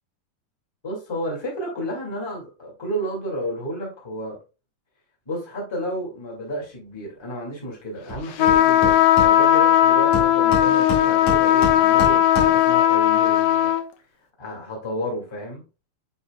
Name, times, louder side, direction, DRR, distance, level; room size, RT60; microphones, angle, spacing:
voice 1, 0.8-4.4 5.2-13.8 14.4-15.6, equal, 15° left, -1 dB, 1.0 m, -31 dB
Hammer, 8.1-8.2 8.5-9.7 10.1-12.8, left 1 dB, 45° left, 2.6 m, -29 dB
sound 1, 8.4-13.8, left 12 dB, 80° left, 2.4 m, -17 dB
9.5 x 4.4 x 2.3 m, 0.30 s
omnidirectional pair, 4.7 m